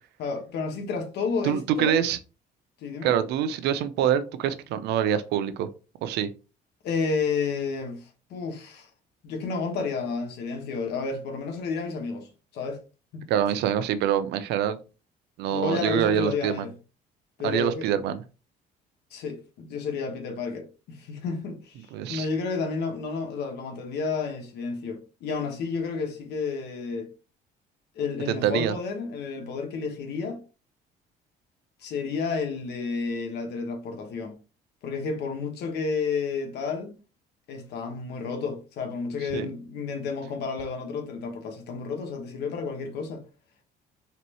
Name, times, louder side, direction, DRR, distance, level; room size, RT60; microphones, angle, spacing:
voice 1, 0.2-2.0 2.8-3.1 6.8-8.9 9.2-12.3 12.5-12.8 13.1-13.2 15.5-16.7 17.4-17.9 19.1-27.1 27.9-30.4 31.8-34.4 34.8-36.9 37.5-43.2, left 4 dB, 75° left, 1.2 m, -31 dB
voice 2, 1.4-2.2 3.0-5.7 6.0-6.3 13.3-14.8 15.4-16.7 17.4-18.2 21.9-22.3 28.3-28.7 39.3-39.5, right 9 dB, 80° right, 0.6 m, -25 dB
4.2 x 3.1 x 2.9 m
cardioid pair, 110°, 17 cm